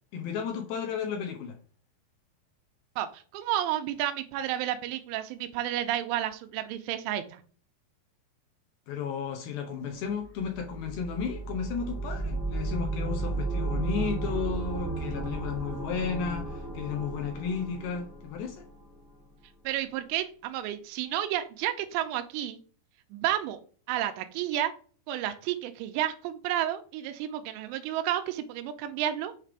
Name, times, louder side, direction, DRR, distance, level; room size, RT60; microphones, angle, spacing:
voice 1, 0.1-1.6 8.9-18.6, left 6 dB, 75° left, 2.3 m, -33 dB
voice 2, 3.0-7.4 19.6-22.6 23.1-23.6 23.9-24.7 25.1-29.3, right 12 dB, 85° right, 2.7 m, -31 dB
sound 1, 10.1-19.0, right 3 dB, 15° right, 0.8 m, -34 dB
7.6 x 3.3 x 4.7 m
omnidirectional pair, 5.4 m